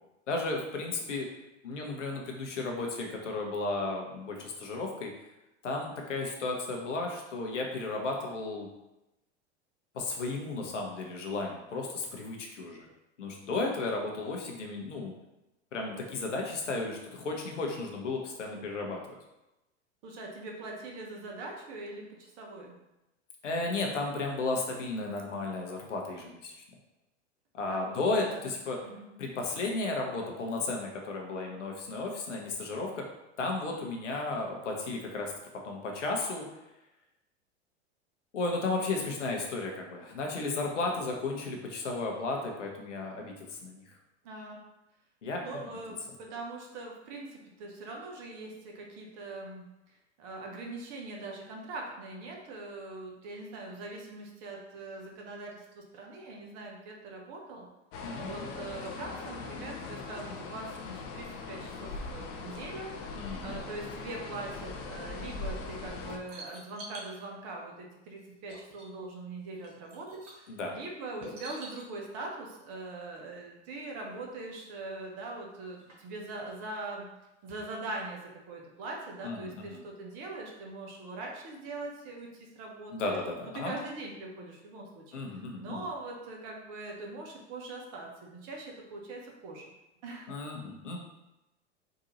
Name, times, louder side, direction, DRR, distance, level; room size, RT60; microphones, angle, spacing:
voice 1, 0.3-1.3 1.6-5.1 5.6-8.7 9.9-12.9 13.2-15.1 15.7-19.0 23.4-26.5 27.5-28.8 29.2-33.0 33.4-35.3 35.6-36.4 38.3-43.9 45.2-45.7 58.0-58.5 63.1-63.6 70.5-70.7 79.2-79.8 82.9-83.7 85.1-85.8 90.3-91.0, left 3 dB, 75° left, 1 dB, 1.0 m, -34 dB
voice 2, 20.0-22.8 27.7-28.5 28.8-29.1 44.2-44.6 45.4-49.6 50.2-57.7 58.1-63.2 63.4-77.1 77.4-78.2 78.5-83.2 83.5-89.6 90.0-90.3, right 2 dB, 45° right, 0 dB, 1.1 m, -42 dB
sound 1, 57.9-66.2, left 4 dB, 35° left, 0.6 m, -40 dB
sound 2, 65.7-67.2 68.2-68.3 68.5-69.1 69.4-70.5 71.2-71.9 73.8-73.9 74.2-74.3 75.0-75.1 75.6-76.5 77.5-77.6 78.0-78.1, right 2 dB, 75° right, 1.4 m, -47 dB
4.0 x 2.7 x 3.9 m, 0.96 s
figure-of-eight pair, 90°, 36 cm